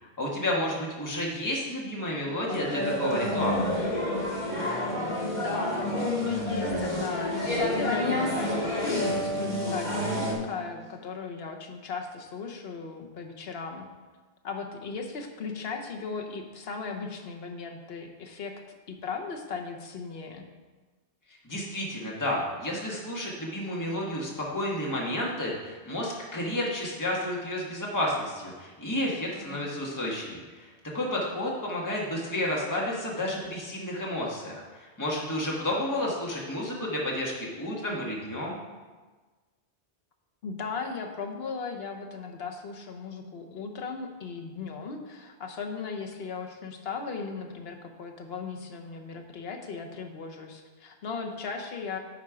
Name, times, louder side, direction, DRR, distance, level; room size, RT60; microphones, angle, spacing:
voice 1, 0.0-3.7 21.3-38.6, left 1 dB, 15° left, -3 dB, 1.4 m, -31 dB
sound 1, 2.5-10.3, left 1 dB, 45° left, 1.8 m, -29 dB
voice 2, 5.1-13.9 14.4-18.6 18.9-20.4 29.3-29.7 35.7-36.0 40.4-52.0, left 5 dB, 70° left, 3 dB, 1.1 m, -37 dB
10.0 x 4.4 x 4.9 m, 1.3 s
omnidirectional pair, 1.1 m